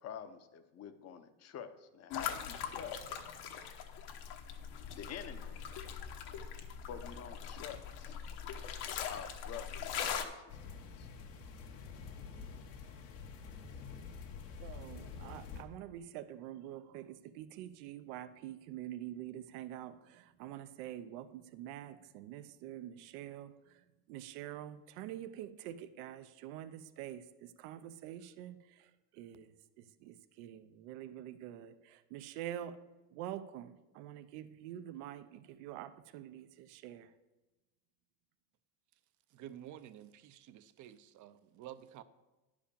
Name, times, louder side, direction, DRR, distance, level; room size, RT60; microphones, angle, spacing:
voice 1, 0.0-3.2 5.0-5.6 6.9-8.2 9.1-9.7 10.2-11.1, left 8 dB, 35° left, 10 dB, 0.8 m, -48 dB
sound 1, 2.1-10.2, left 8 dB, 55° left, 1.3 m, -41 dB
sound 2, 10.5-15.6, left 5 dB, 75° left, 1.5 m, -48 dB
voice 2, 14.6-32.8 33.1-37.1, right 12 dB, 75° right, 12 dB, 0.8 m, -46 dB
voice 3, 39.3-42.0, right 11 dB, 40° right, 13 dB, 0.6 m, -51 dB
10.5 x 5.1 x 6.9 m, 1.1 s
supercardioid pair, 130°, 47 cm